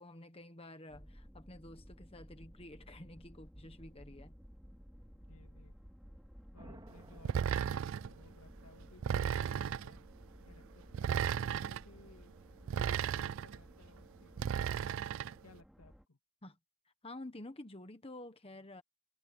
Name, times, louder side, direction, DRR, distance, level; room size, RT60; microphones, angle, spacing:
voice 1, 0.0-4.3 16.4-16.6 17.0-18.8, left 1 dB, 25° left, 1.3 m, -50 dB
sound 1, 0.9-16.1, equal, ahead, 4.9 m, -56 dB
voice 2, 5.1-5.7 6.5-10.0 10.5-12.3 12.9-14.7 15.4-16.2, left 3 dB, 85° left, 2.3 m, -61 dB
sound 2, 6.6-8.7, right 1 dB, 20° right, 2.8 m, -57 dB
sound 3, 7.3-8.1 9.0-9.9 10.9-11.8 12.7-13.6 14.4-15.3, right 8 dB, 60° right, 0.3 m, -34 dB
head